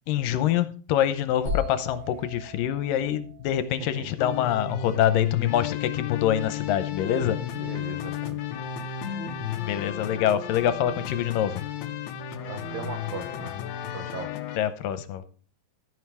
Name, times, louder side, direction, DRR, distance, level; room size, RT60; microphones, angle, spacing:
voice 1, 0.1-7.4 9.6-11.6 14.6-15.2, left 10 dB, 85° left, 2.5 m, -25 dB
sound 1, 1.5-5.2, left 2 dB, 70° right, 8.0 m, -37 dB
sound 2, 4.2-14.6, left 9 dB, 70° left, 1.9 m, -33 dB
voice 2, 7.6-8.4 12.4-13.6 13.9-14.3, right 5 dB, 90° right, 3.2 m, -38 dB
12.5 x 9.6 x 3.4 m
omnidirectional pair, 3.9 m